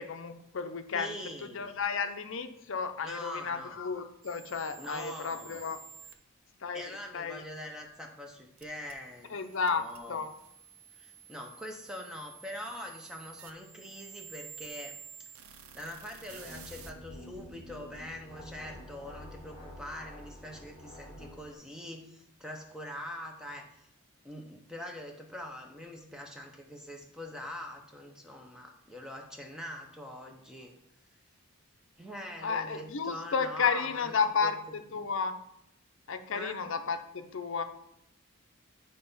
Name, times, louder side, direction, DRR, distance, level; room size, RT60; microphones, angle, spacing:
voice 1, 0.0-1.1 1.4-5.8 6.6-7.4 9.3-10.3 32.4-34.6 34.9-35.3 36.1-37.6, left 5 dB, 60° left, 8 dB, 0.6 m, -32 dB
voice 2, 0.9-1.7 3.0-3.8 4.8-5.7 6.7-9.4 9.7-10.2 11.0-15.0 15.7-23.9 24.2-30.7 32.0-34.5 36.3-36.6, left 1 dB, 5° right, 2 dB, 0.7 m, -43 dB
sound 1, 4.2-6.1 8.6-16.9, right 7 dB, 70° right, 0.6 m, -51 dB
sound 2, 16.2-21.5, left 1 dB, 30° left, 1.0 m, -48 dB
7.6 x 3.4 x 5.5 m, 0.79 s
head